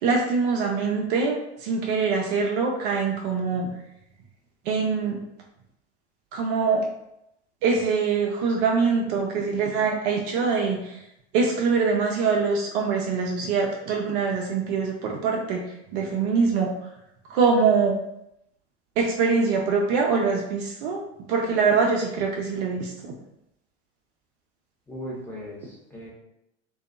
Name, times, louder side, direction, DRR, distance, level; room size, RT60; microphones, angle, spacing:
voice 1, 0.0-3.7 4.6-5.2 6.3-6.8 7.6-11.0 11.3-16.7 17.3-18.0 19.0-21.0 21.3-23.2, right 5 dB, 50° right, 0 dB, 0.5 m, -24 dB
voice 2, 24.9-26.1, equal, 5° left, -6 dB, 0.9 m, -37 dB
2.6 x 2.2 x 2.5 m, 0.83 s
hypercardioid pair, 90°, 35 cm